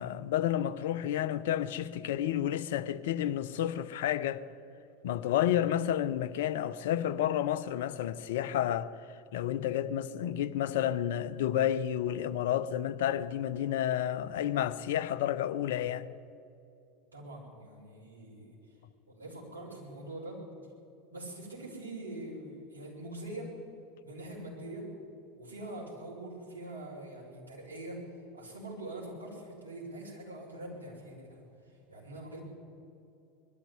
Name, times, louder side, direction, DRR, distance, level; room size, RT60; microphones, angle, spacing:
voice 1, 0.0-4.4 5.0-8.9 9.3-16.1, left 11 dB, 65° left, 0.7 m, -30 dB
voice 2, 17.1-18.5 19.1-20.4 21.1-23.5 24.0-24.9 25.3-28.0 28.3-31.4 31.9-32.4, right 1 dB, 85° right, 6.0 m, -43 dB
21.0 x 13.5 x 9.8 m
figure-of-eight pair, 80°, 0 cm